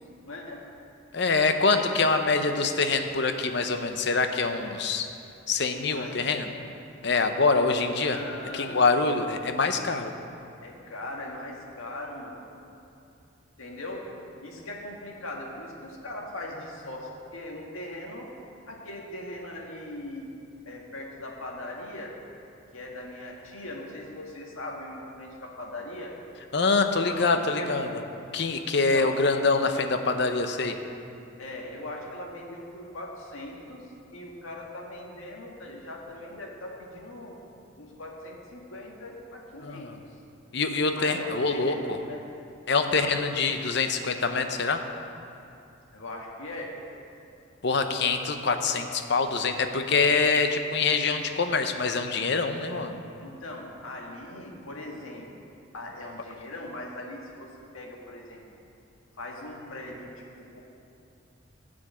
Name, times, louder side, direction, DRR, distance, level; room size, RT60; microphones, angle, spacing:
voice 1, 0.3-0.6 5.9-6.4 8.1-9.0 10.6-12.5 13.6-14.0 14.4-18.3 18.7-20.3 20.7-22.1 22.7-26.1 27.0-27.8 28.7-29.2 31.4-33.9 34.1-37.4 37.8-40.2 40.9-42.2 42.9-43.1 45.9-46.7 53.2-55.5 55.7-57.5 57.7-58.4 59.2-60.3 60.5-60.6, left 1 dB, 85° left, -1 dB, 1.7 m, -40 dB
voice 2, 1.1-5.1 5.5-6.5 7.0-8.2 8.5-10.1 26.5-27.9 28.3-30.8 39.6-39.9 40.5-42.0 42.7-44.8 47.6-53.0, left 4 dB, 55° left, 7 dB, 0.7 m, -25 dB
12.5 x 5.2 x 8.3 m, 2.6 s
head